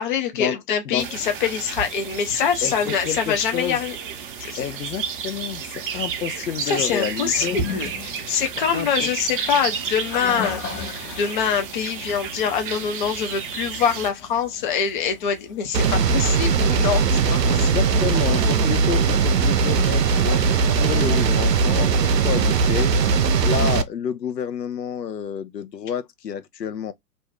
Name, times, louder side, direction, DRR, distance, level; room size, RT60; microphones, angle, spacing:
voice 1, 0.0-4.0 4.4-4.7 6.6-17.7, left 7 dB, 30° left, 0.5 m, -25 dB
sound 1, 1.0-14.1, right 7 dB, 35° right, 0.6 m, -32 dB
voice 2, 2.6-3.8 4.6-7.6 8.7-9.1 17.5-20.5 20.8-23.0 23.4-26.9, left 8 dB, 80° left, 0.6 m, -29 dB
Toilet flush, 7.3-16.6, left 6 dB, 50° left, 1.0 m, -38 dB
sound 2, 15.7-23.8, right 5 dB, 80° right, 0.6 m, -19 dB
2.5 x 2.2 x 3.3 m
figure-of-eight pair, 110°, 49 cm